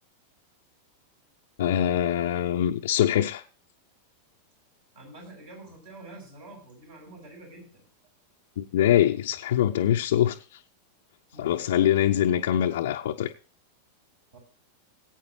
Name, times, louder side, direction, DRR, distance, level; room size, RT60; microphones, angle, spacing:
voice 1, 1.6-3.4 8.6-10.6 11.4-13.3, left 11 dB, 60° left, 0.6 m, -23 dB
voice 2, 4.9-7.9 11.3-11.7 14.3-14.4, right 2 dB, 60° right, 7.3 m, -47 dB
20.0 x 8.9 x 3.1 m
figure-of-eight pair, 90°, 0 cm